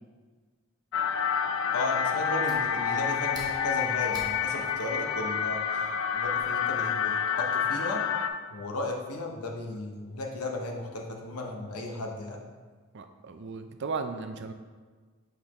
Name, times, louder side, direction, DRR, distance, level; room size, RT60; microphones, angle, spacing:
sound 1, 0.9-8.3, left 7 dB, 60° left, 0.4 m, -28 dB
voice 1, 1.7-5.9 6.1-8.0 8.5-12.4, left 2 dB, 85° left, 1 dB, 0.9 m, -35 dB
Fire, 2.0-6.4, right 1 dB, 15° right, 1.0 m, -51 dB
voice 2, 12.9-14.5, right 4 dB, 55° right, 7 dB, 0.4 m, -36 dB
6.3 x 5.2 x 3.0 m, 1.4 s
head